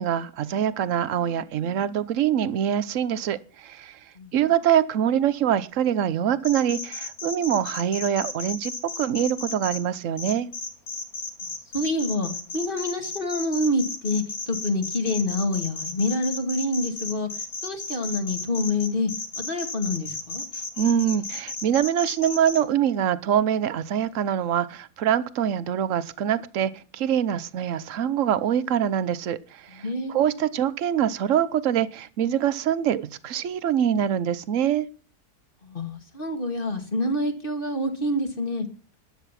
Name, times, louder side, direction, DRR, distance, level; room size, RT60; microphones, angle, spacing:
voice 1, 0.0-4.0 4.3-10.5 20.8-29.8 30.1-34.9, right 9 dB, 55° right, 1.1 m, -24 dB
sound 1, 6.4-9.8 10.2-22.6, left 3 dB, 60° left, 3.3 m, -33 dB
voice 2, 11.7-17.3 17.6-20.4 29.7-30.1 35.6-38.7, left 1 dB, 30° left, 2.3 m, -27 dB
13.0 x 10.5 x 5.9 m
omnidirectional pair, 1.7 m